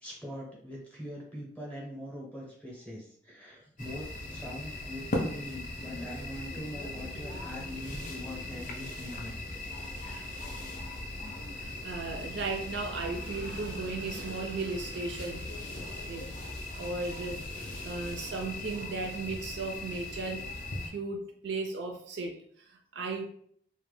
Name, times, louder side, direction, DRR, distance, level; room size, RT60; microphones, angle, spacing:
voice 1, 0.0-9.4 9.8-10.3, equal, 5° left, -3 dB, 0.7 m, -43 dB
sound 1, 3.8-20.9, left 2 dB, 40° left, 0.4 m, -39 dB
voice 2, 11.4-15.7 16.1-16.3 16.8-20.6 20.8-23.2, right 3 dB, 60° right, 3 dB, 0.4 m, -36 dB
2.1 x 2.1 x 3.1 m, 0.63 s
head